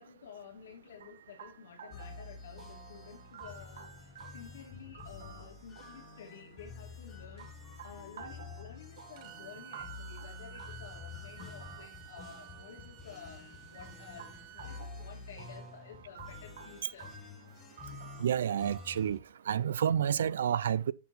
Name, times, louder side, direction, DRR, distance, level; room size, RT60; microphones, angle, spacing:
voice 1, 0.0-7.5 7.8-17.1, left 7 dB, 85° left, 2.9 m, -52 dB
sound 1, 1.0-20.2, right 7 dB, 70° right, 2.0 m, -53 dB
sound 2, 1.9-19.2, left 5 dB, 15° left, 1.0 m, -49 dB
Bowed string instrument, 9.2-14.9, right 13 dB, 25° right, 0.9 m, -53 dB
voice 2, 18.2-19.2 19.5-20.9, right 9 dB, 90° right, 0.5 m, -29 dB
10.5 x 4.6 x 4.2 m
supercardioid pair, 180°, 0 cm